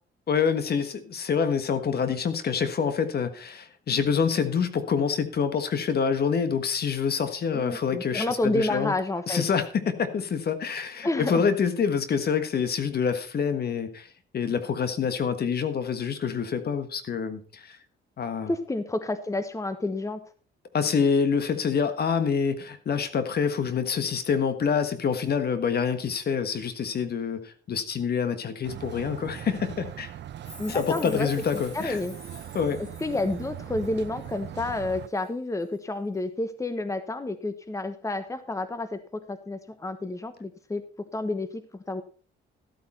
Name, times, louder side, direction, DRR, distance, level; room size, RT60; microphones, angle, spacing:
voice 1, 0.3-8.9 9.3-14.1 14.3-17.8 18.2-18.5 20.7-30.1 30.7-32.0 32.5-32.8, left 6 dB, 55° left, 10 dB, 1.4 m, -26 dB
voice 2, 7.5-9.4 11.0-11.4 18.5-20.2 30.6-31.3 31.7-32.1 33.0-40.8 41.1-42.0, left 2 dB, 15° left, 11 dB, 1.2 m, -30 dB
sound 1, 28.6-35.1, right 11 dB, 65° right, 0.8 m, -40 dB
Chime, 30.4-34.4 34.7-35.3 35.6-35.7, left 3 dB, 35° left, 6.3 m, -49 dB
14.0 x 8.7 x 4.3 m, 0.40 s
cardioid pair, 90°, 20 cm